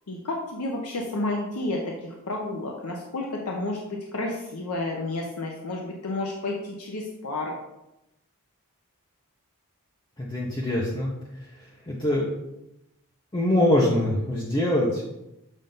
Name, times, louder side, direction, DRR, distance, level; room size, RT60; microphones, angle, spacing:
voice 1, 0.1-7.5, left 2 dB, 80° left, 0 dB, 0.8 m, -31 dB
voice 2, 10.2-11.1 11.9-12.3 13.3-15.0, left 1 dB, 20° left, -4 dB, 0.8 m, -23 dB
7.4 x 2.6 x 5.3 m, 0.91 s
head